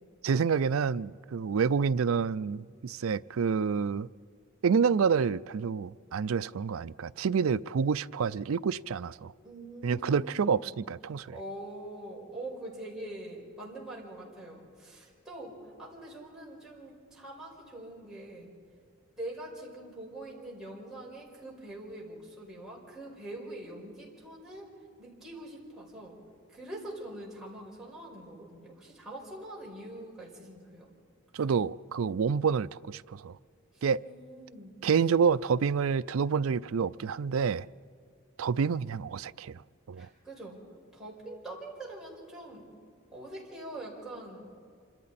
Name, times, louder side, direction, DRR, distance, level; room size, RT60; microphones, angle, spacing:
voice 1, 0.2-4.1 4.6-9.3 9.8-11.4 31.3-33.4 33.8-34.0 34.8-37.7 38.4-39.6 39.9-40.1, right 6 dB, 80° right, 0.4 m, -28 dB
voice 2, 9.4-10.8 11.1-18.5 19.2-24.7 25.0-26.2 26.5-30.9 33.7-34.8 40.0-40.6 40.9-42.7 43.1-44.5, right 1 dB, 5° right, 5.1 m, -44 dB
27.5 x 26.0 x 4.2 m
head